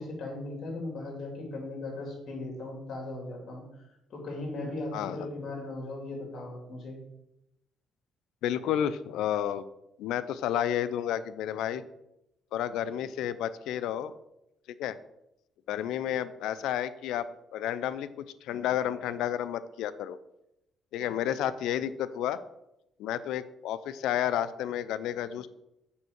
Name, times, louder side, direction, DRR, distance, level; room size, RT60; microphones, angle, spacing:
voice 1, 0.0-3.6 4.1-7.0, left 2 dB, 60° left, 0 dB, 3.4 m, -38 dB
voice 2, 4.9-5.3 8.4-9.6 10.0-11.8 12.5-14.1 14.8-15.0 15.7-17.3 17.5-18.1 18.4-20.2 20.9-22.4 23.0-25.5, left 10 dB, 90° left, 14 dB, 0.5 m, -31 dB
7.1 x 5.3 x 6.4 m, 0.87 s
cardioid pair, 95°, 0 cm